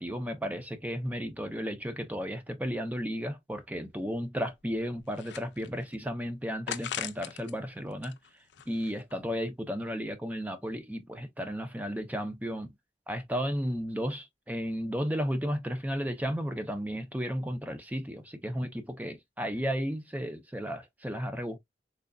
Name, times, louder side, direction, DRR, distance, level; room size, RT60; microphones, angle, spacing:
voice 1, 0.0-8.2 8.7-12.7 13.1-21.6, equal, 10° right, 0.6 m, -34 dB
sound 1, 3.5-3.6 4.0-4.1 4.6-6.0 6.7-7.5 7.9-9.1, left 9 dB, 85° left, 0.5 m, -40 dB
3.8 x 3.4 x 2.3 m
head